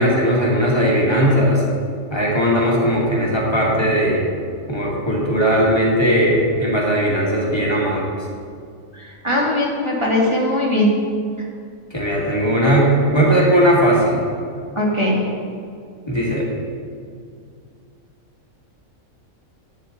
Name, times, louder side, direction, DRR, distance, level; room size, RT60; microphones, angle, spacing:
voice 1, 0.0-1.6 2.1-4.3 4.7-8.0 11.9-14.2 16.1-16.5, equal, 20° left, -4 dB, 2.1 m, -18 dB
voice 2, 8.9-10.9 14.8-15.2, left 1 dB, 20° right, -5 dB, 1.8 m, -20 dB
11.0 x 9.3 x 3.9 m, 2.2 s
omnidirectional pair, 1.4 m